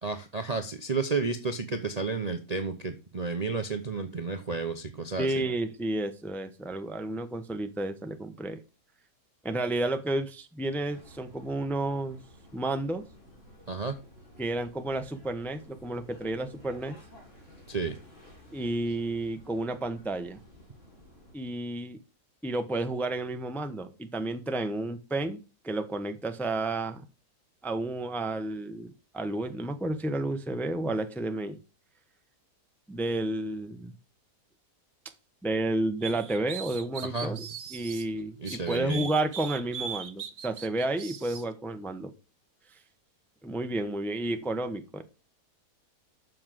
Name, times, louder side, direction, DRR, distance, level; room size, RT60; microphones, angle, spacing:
voice 1, 0.0-5.4 13.7-14.0 17.7-18.0 37.0-37.4 38.4-39.1, right 4 dB, 35° right, 7 dB, 0.6 m, -32 dB
voice 2, 5.2-8.6 9.4-12.2 12.5-13.1 14.4-16.9 18.5-20.4 21.3-22.0 22.4-27.0 27.6-31.6 32.9-33.9 35.4-42.1 43.4-45.0, right 2 dB, ahead, 7 dB, 0.6 m, -31 dB
sound 1, 10.9-21.3, left 1 dB, 45° left, 3.7 m, -53 dB
sound 2, 36.0-38.1 38.5-41.4, right 7 dB, 55° right, 1.3 m, -39 dB
7.4 x 6.2 x 7.5 m, 0.32 s
omnidirectional pair, 1.8 m